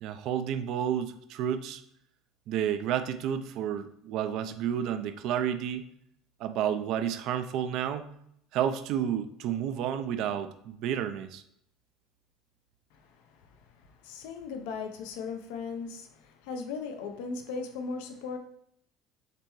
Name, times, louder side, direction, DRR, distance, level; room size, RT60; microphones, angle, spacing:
voice 1, 0.0-1.8 2.5-5.9 6.4-8.1 8.5-11.4, right 9 dB, 65° right, 0.4 m, -31 dB
voice 2, 12.9-18.4, left 5 dB, 80° left, 0.6 m, -38 dB
6.6 x 2.2 x 3.0 m
supercardioid pair, 95°, 0 cm